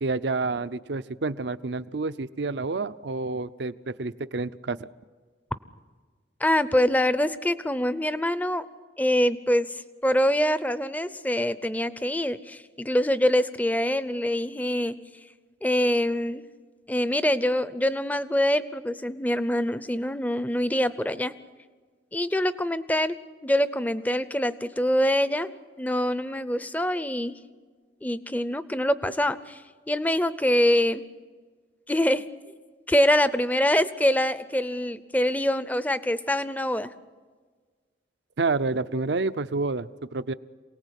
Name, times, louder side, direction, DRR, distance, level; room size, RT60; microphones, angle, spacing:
voice 1, 0.0-4.9 38.4-40.3, right 3 dB, 70° right, 13 dB, 0.6 m, -29 dB
voice 2, 6.4-8.6 9.0-14.9 15.6-16.5 16.9-21.3 22.1-23.2 23.4-25.5 25.8-27.4 28.0-29.6 29.9-31.0 31.9-32.3 32.9-36.9, left 1 dB, 10° left, 14 dB, 0.6 m, -24 dB
27.5 x 18.5 x 8.3 m, 1.5 s
head